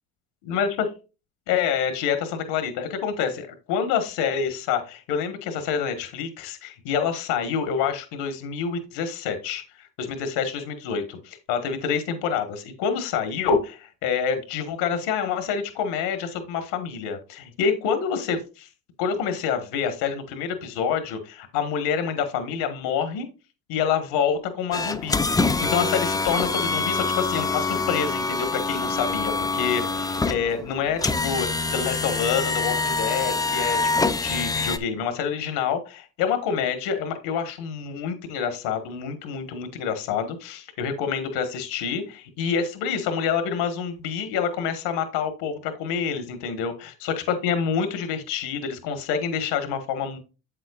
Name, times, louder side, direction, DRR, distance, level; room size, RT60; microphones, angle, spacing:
voice 1, 0.5-0.9 1.5-18.7 19.0-23.3 23.7-25.2 25.6-50.2, left 7 dB, 80° left, 8 dB, 1.5 m, -27 dB
sound 1, 24.7-34.8, left 3 dB, 10° left, 0.4 m, -25 dB
7.9 x 7.6 x 2.4 m, 0.32 s
supercardioid pair, 90°, 39 cm